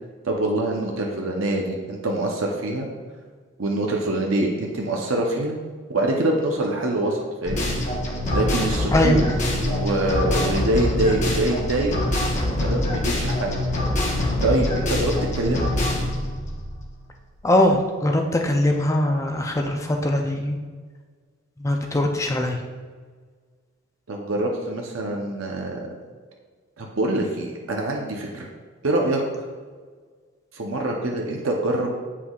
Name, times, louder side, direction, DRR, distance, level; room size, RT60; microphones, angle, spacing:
voice 1, 0.2-2.9 3.6-5.6 5.9-7.8 8.3-9.2 9.6-11.9 12.6-13.5 14.4-15.7 24.1-25.9 26.8-28.5 28.8-29.2 30.5-31.9, right 1 dB, 75° right, 0 dB, 0.8 m, -25 dB
sound 1, 7.5-17.4, left 1 dB, 35° left, 1.1 m, -25 dB
voice 2, 8.9-9.2 17.4-20.6 21.6-22.6, left 1 dB, 15° left, 3 dB, 0.5 m, -21 dB
8.1 x 5.8 x 2.4 m, 1.5 s
head